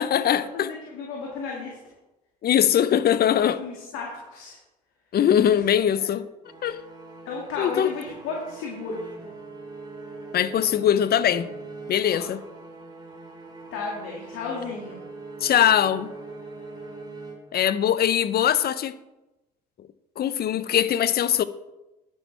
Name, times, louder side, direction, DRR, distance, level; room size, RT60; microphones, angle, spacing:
voice 1, 0.0-0.7 2.4-3.6 5.1-6.3 6.6-6.8 7.6-7.9 10.3-11.5 11.9-12.4 15.4-16.1 17.5-18.9 20.2-21.4, left 10 dB, 50° left, 0.7 m, -21 dB
voice 2, 0.5-1.8 3.6-4.6 6.0-6.1 6.6-6.7 7.2-9.1 12.0-12.3 13.7-15.0, left 4 dB, 70° left, 2.1 m, -34 dB
sound 1, 6.4-17.9, right 3 dB, 20° right, 2.9 m, -42 dB
10.5 x 9.1 x 3.4 m
hypercardioid pair, 60°, 21 cm